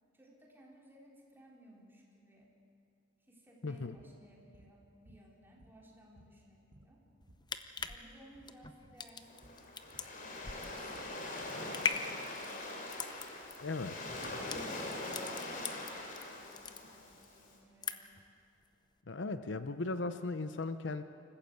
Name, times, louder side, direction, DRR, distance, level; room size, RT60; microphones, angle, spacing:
voice 1, 0.1-2.6 3.3-7.0 7.9-9.9 10.5-12.7 13.9-14.5 14.9-18.2, right 1 dB, 10° right, -2 dB, 3.7 m, -60 dB
voice 2, 3.6-4.0 13.6-14.0 19.1-21.0, left 3 dB, 70° left, 10 dB, 0.8 m, -37 dB
sound 1, 4.0-4.2 4.5-4.7 5.1-5.9 6.2-8.0 8.3-8.5 8.8-9.0 9.4-9.6 9.9-11.6, right 1 dB, 70° right, 1.7 m, -61 dB
sound 2, 7.2-16.2 16.5-17.3 17.6-18.3 18.6-18.7, left 5 dB, 25° left, 0.7 m, -40 dB
Waves surf, 9.2-17.5, left 2 dB, 45° left, 3.3 m, -43 dB
26.5 x 15.0 x 7.9 m, 2.5 s
head